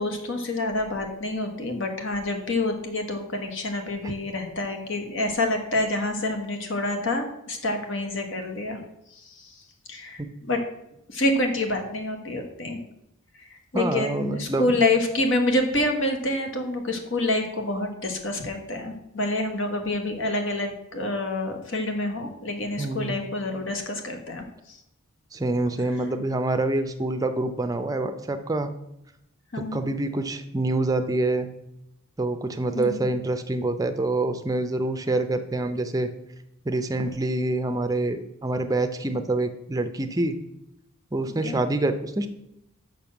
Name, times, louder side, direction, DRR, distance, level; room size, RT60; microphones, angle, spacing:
voice 1, 0.0-8.8 9.1-9.5 9.9-10.6 11.1-12.8 13.4-13.5 13.7-24.8 29.5-29.9 32.7-33.1 41.4-41.7, left 2 dB, 60° left, 4 dB, 1.4 m, -27 dB
voice 2, 13.7-14.7 22.8-23.2 25.3-28.7 29.6-31.5 32.2-36.1 36.6-40.4 41.1-42.3, right 2 dB, 15° right, 8 dB, 0.5 m, -26 dB
6.9 x 6.0 x 5.9 m, 0.84 s
head